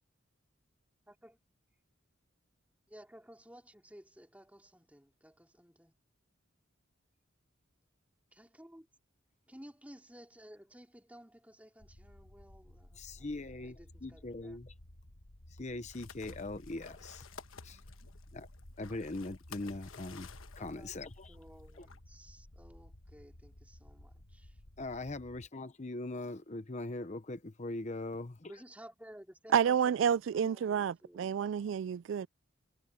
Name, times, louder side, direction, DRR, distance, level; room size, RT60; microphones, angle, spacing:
voice 1, 1.1-1.4 2.9-6.0 8.3-8.9 9.5-14.6 20.6-21.0 21.3-24.6 26.1-26.4 28.4-31.8, equal, 5° right, 2.9 m, -56 dB
sound 1, 11.8-25.5, left 1 dB, 55° left, 1.5 m, -55 dB
voice 2, 13.0-13.8 14.0-14.7 15.6-17.3 17.6-17.8 18.3-18.5 18.8-20.3 20.6-21.3 21.8-21.9 24.8-28.5, left 2 dB, 35° left, 0.8 m, -41 dB
sound 2, 15.9-22.0, left 5 dB, 90° left, 1.2 m, -54 dB
voice 3, 29.5-32.3, right 8 dB, 70° right, 0.3 m, -29 dB
head